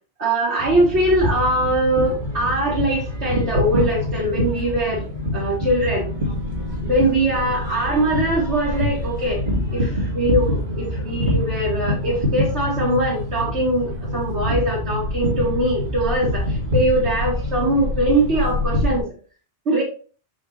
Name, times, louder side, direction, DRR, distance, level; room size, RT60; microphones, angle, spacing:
voice 1, 0.2-5.1 5.3-6.1 6.8-9.4 9.7-19.1 19.7-19.8, right 1 dB, 65° right, -7 dB, 2.2 m, -22 dB
sound 1, 0.6-19.0, left 1 dB, 40° right, 2.2 m, -25 dB
5.9 x 5.2 x 3.1 m, 0.39 s
omnidirectional pair, 1.2 m